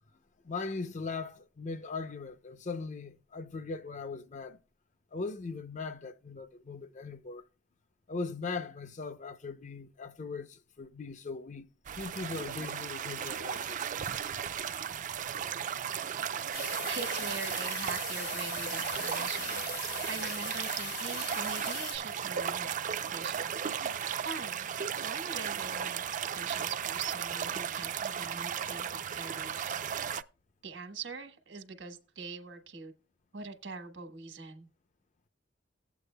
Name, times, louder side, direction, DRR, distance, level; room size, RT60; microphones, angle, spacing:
voice 1, 0.4-4.6 5.1-7.4 8.1-13.8, left 4 dB, 40° left, 0.6 m, -39 dB
sound 1, 11.8-30.2, right 8 dB, 45° right, 0.4 m, -35 dB
sound 2, 16.5-22.0, left 4 dB, 80° left, 4.5 m, -40 dB
voice 2, 16.9-23.9 24.2-24.7 25.0-29.7 30.6-32.9 33.3-34.7, right 4 dB, 80° right, 1.3 m, -43 dB
16.0 x 8.2 x 2.2 m
head